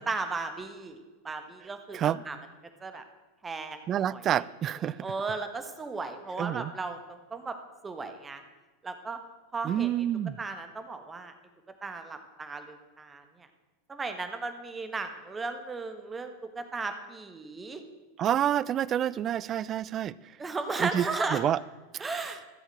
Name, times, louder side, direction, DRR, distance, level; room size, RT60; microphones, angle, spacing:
voice 1, 0.1-1.0 1.2-2.4 2.8-3.0 3.4-4.2 5.0-7.5 7.8-8.4 8.8-9.2 9.5-9.9 10.4-11.3 11.8-13.2 13.9-17.8 20.4-21.4 22.0-22.4, right 3 dB, 20° right, 1.5 m, -35 dB
voice 2, 1.9-2.2 3.9-5.0 6.4-6.7 9.6-10.4 18.2-20.4 20.8-21.6 21.9-22.0, right 10 dB, 35° right, 0.4 m, -28 dB
14.0 x 7.2 x 7.6 m
hypercardioid pair, 90°, 0 cm